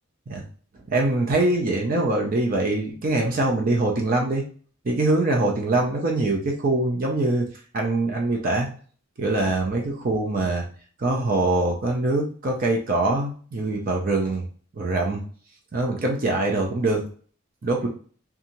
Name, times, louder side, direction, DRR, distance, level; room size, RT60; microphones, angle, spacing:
voice 1, 0.9-4.4 4.8-7.5 7.7-8.7 9.2-10.6 11.0-14.4 14.7-15.2 15.7-17.1 17.6-17.9, right 2 dB, 40° right, 0 dB, 0.5 m, -23 dB
2.6 x 2.3 x 2.9 m, 0.43 s
head